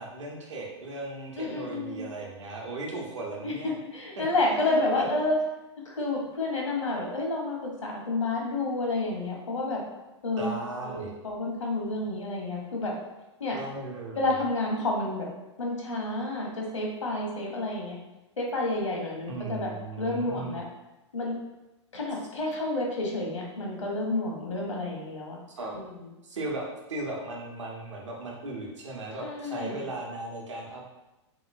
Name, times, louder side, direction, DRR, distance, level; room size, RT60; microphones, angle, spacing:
voice 1, 0.0-3.8 4.5-5.0 10.4-11.1 13.5-14.2 19.3-20.6 25.5-25.8 26.2-30.9, right 2 dB, 75° right, -2 dB, 0.9 m, -37 dB
voice 2, 1.4-2.1 3.4-5.4 5.8-9.8 10.2-10.5 10.8-12.9 13.4-13.6 14.1-15.3 15.6-18.0 18.4-19.7 20.0-20.6 21.1-21.3 21.9-25.4 25.7-26.1 29.2-29.8, left 2 dB, 85° left, -1 dB, 0.9 m, -30 dB
3.0 x 3.0 x 2.5 m, 1.0 s
hypercardioid pair, 110°, 15 cm